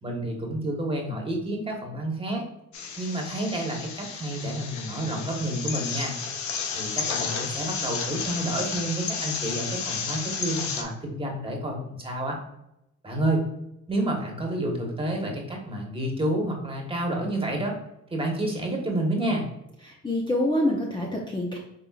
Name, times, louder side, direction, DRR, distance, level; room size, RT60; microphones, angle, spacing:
voice 1, 0.0-2.4 3.0-6.1 6.7-12.4 13.0-13.4 13.9-17.8 18.1-19.5, right 1 dB, 20° right, 0 dB, 1.4 m, -29 dB
sound 1, 2.7-10.8, left 6 dB, 70° left, 0.8 m, -32 dB
voice 2, 19.8-21.6, left 1 dB, 15° left, -2 dB, 0.8 m, -26 dB
5.5 x 3.6 x 2.5 m, 0.84 s
cardioid pair, 90°, 30 cm